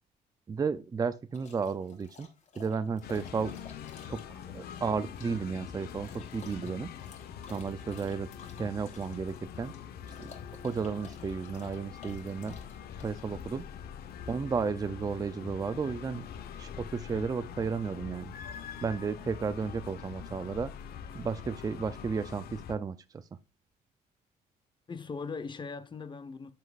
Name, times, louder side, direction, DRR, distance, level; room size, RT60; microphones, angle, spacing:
voice 1, 0.5-2.3 2.6-3.5 4.1-6.9 7.5-8.3 8.6-9.7 10.2-10.3 10.6-12.6 13.0-13.6 14.3-16.2 16.6-18.3 18.8-20.7 21.1-23.2, right 5 dB, 20° right, 0.5 m, -33 dB
sound 1, 1.3-13.8, left 5 dB, 45° left, 3.1 m, -55 dB
sound 2, 3.0-22.8, left 8 dB, 65° left, 1.1 m, -44 dB
voice 2, 24.9-26.5, left 4 dB, 30° left, 1.0 m, -40 dB
10.5 x 5.9 x 2.5 m
cardioid pair, 110°, 17 cm